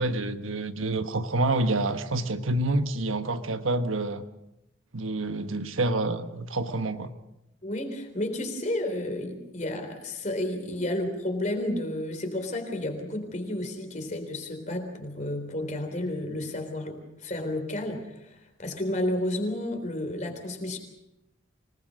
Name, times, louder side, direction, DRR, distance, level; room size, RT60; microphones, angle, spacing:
voice 1, 0.0-4.2 4.9-7.1, right 2 dB, 90° right, 1.3 m, -28 dB
voice 2, 7.6-20.8, left 1 dB, 35° left, 3.7 m, -31 dB
26.0 x 19.5 x 6.4 m
head